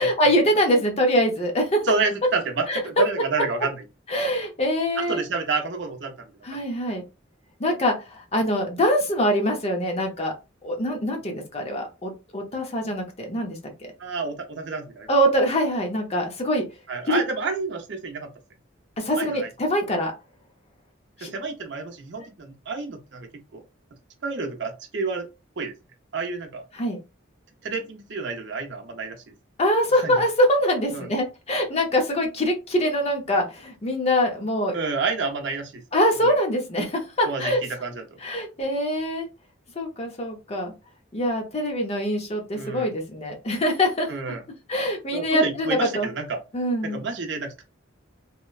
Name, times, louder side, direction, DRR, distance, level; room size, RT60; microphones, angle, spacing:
voice 1, 0.0-1.8 2.7-2.8 4.1-5.2 6.4-7.0 7.6-10.3 10.6-13.9 15.1-16.7 17.1-17.2 19.0-20.1 21.2-21.3 26.7-27.0 29.6-34.7 35.9-37.6 38.2-39.3 39.8-40.7 41.1-44.1 44.7-46.1 46.5-47.0, equal, 30° left, 2 dB, 0.6 m, -24 dB
voice 2, 1.8-3.8 5.0-6.3 14.0-15.1 16.9-18.3 19.2-19.5 21.2-23.6 24.2-25.3 25.6-25.7 26.1-26.7 27.6-29.2 29.9-30.1 30.9-31.1 34.7-35.8 36.2-36.4 37.2-38.0 42.5-42.9 44.1-44.4 45.1-46.4 46.8-47.6, right 4 dB, 60° right, 3 dB, 0.6 m, -29 dB
2.9 x 2.1 x 2.3 m, 0.28 s
head